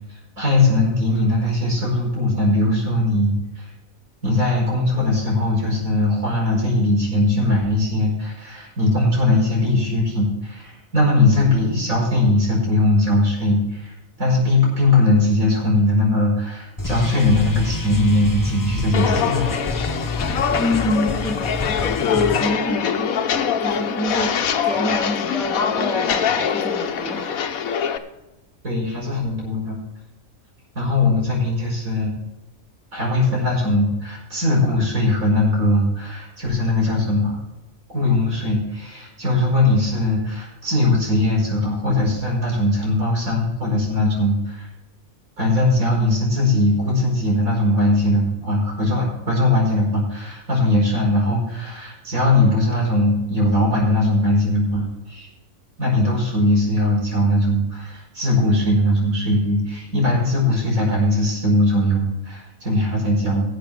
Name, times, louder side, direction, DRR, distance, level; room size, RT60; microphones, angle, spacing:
voice 1, 0.4-3.6 4.2-19.4 28.6-29.8 30.8-32.1 32.9-37.4 37.9-44.7 45.4-55.3 55.8-63.4, left 2 dB, 80° right, -3 dB, 5.4 m, -20 dB
sound 1, 16.8-22.5, left 2 dB, 15° left, 0.9 m, -28 dB
Walk footsteps, 18.9-28.0, left 7 dB, 85° left, 1.3 m, -23 dB
voice 2, 20.6-23.2 23.6-24.4 24.6-27.9, left 1 dB, ahead, -1 dB, 2.0 m, -27 dB
18.5 x 7.8 x 3.7 m, 1.0 s
omnidirectional pair, 1.4 m